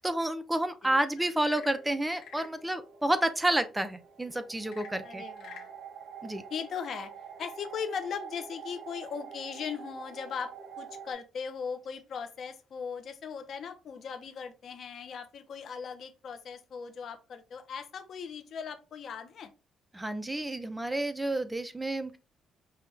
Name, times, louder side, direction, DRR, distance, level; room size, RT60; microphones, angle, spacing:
voice 1, 0.0-5.2 6.2-6.4 19.9-22.2, right 1 dB, 10° right, 0.7 m, -30 dB
Frog / Percussion / Wood, 1.3-2.6 4.6-5.7, left 8 dB, 80° left, 1.2 m, -49 dB
sound 1, 1.3-11.1, right 7 dB, 80° right, 1.0 m, -47 dB
voice 2, 5.0-5.7 6.5-7.1 7.4-19.5, left 6 dB, 60° left, 0.8 m, -39 dB
5.6 x 2.5 x 3.3 m
cardioid pair, 90°, 0 cm